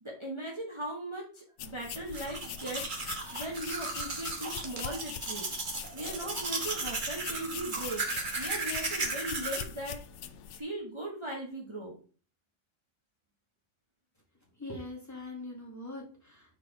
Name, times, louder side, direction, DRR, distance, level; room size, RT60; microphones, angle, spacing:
voice 1, 0.0-10.0 10.6-12.0, right 1 dB, 25° right, -2 dB, 1.1 m, -39 dB
sound 1, 1.6-10.6, left 8 dB, 75° left, 0.9 m, -43 dB
Domestic sounds home sounds, 1.9-9.6, right 3 dB, 45° right, 1.4 m, -35 dB
voice 2, 14.6-16.6, left 2 dB, 15° left, -3 dB, 2.0 m, -42 dB
4.6 x 4.1 x 5.7 m, 0.41 s
omnidirectional pair, 1.3 m